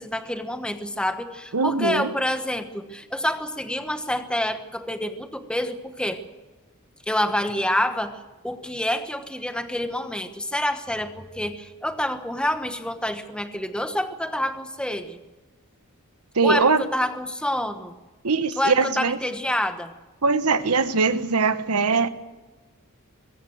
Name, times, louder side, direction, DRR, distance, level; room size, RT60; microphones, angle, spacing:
voice 1, 0.0-6.2 7.1-8.2 8.4-15.2 16.4-17.9 18.6-19.9, left 1 dB, 5° left, 8 dB, 1.2 m, -27 dB
voice 2, 1.5-2.1 16.3-16.8 18.2-19.2 20.2-22.1, right 4 dB, 85° right, 11 dB, 1.2 m, -21 dB
23.0 x 16.5 x 7.9 m, 1.2 s
head